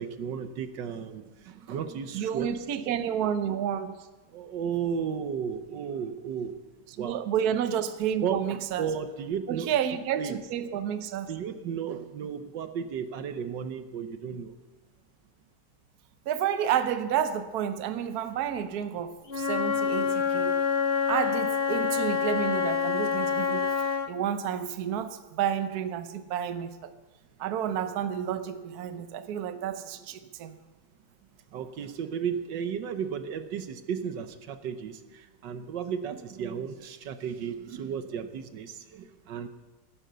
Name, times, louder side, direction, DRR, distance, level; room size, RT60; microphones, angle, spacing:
voice 1, 0.0-2.5 4.3-6.6 6.9-7.2 8.2-8.4 8.8-9.7 10.1-10.4 11.3-14.5 31.5-39.5, right 7 dB, 85° right, 10 dB, 1.6 m, -34 dB
voice 2, 2.1-4.1 6.9-8.9 9.5-11.3 16.3-20.6 21.1-23.7 24.1-26.9 27.4-30.5, right 9 dB, 65° right, 10 dB, 1.3 m, -30 dB
Wind instrument woodwind instrument, 19.3-24.1, left 6 dB, 45° left, 1.0 m, -27 dB
16.0 x 10.0 x 6.8 m, 1.2 s
omnidirectional pair, 1.9 m